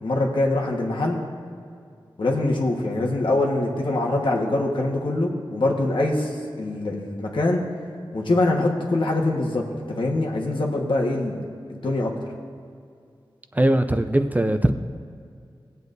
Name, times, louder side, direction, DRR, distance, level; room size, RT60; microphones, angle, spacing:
voice 1, 0.0-1.2 2.2-6.3 6.6-7.6 8.1-11.4 11.7-12.1, left 2 dB, 70° left, 0 dB, 1.4 m, -23 dB
voice 2, 13.6-14.7, right 1 dB, 20° right, 7 dB, 0.5 m, -20 dB
18.0 x 8.1 x 2.7 m, 2.3 s
wide cardioid pair, 90°, 9 cm